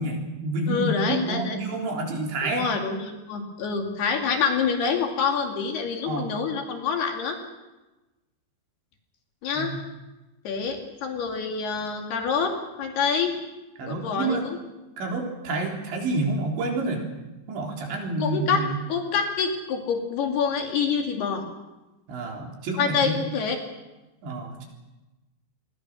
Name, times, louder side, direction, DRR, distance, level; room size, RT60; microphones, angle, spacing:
voice 1, 0.0-2.7 6.1-6.3 9.6-9.8 13.8-14.5 15.0-17.1 17.5-18.7 22.1-23.2 24.2-24.7, right 2 dB, 65° right, 1 dB, 5.9 m, -28 dB
voice 2, 0.7-1.6 2.4-7.4 9.4-9.7 10.4-13.4 13.8-14.6 18.2-18.6 18.9-21.4 22.8-23.6, left 6 dB, 60° left, 3 dB, 4.1 m, -26 dB
27.0 x 22.5 x 6.3 m, 1.1 s
omnidirectional pair, 5.6 m